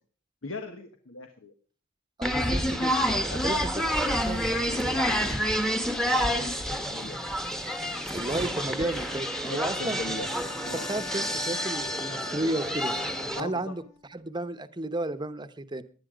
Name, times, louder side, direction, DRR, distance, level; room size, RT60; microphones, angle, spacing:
voice 1, 0.4-1.5 3.1-3.7 6.1-7.4 9.5-10.3 10.6-10.9 13.3-13.7, left 2 dB, 85° left, 6 dB, 1.5 m, -39 dB
sound 1, 2.2-13.4, equal, 5° left, 1.2 m, -29 dB
voice 2, 2.2-2.9 3.2-3.7 4.0-5.4 8.1-10.0 10.7-13.0 13.3-13.8 14.1-15.8, right 1 dB, 20° right, 11 dB, 0.9 m, -33 dB
Wind instrument woodwind instrument, 6.3-14.3, left 3 dB, 20° left, 1.6 m, -44 dB
18.0 x 11.5 x 5.1 m, 0.39 s
head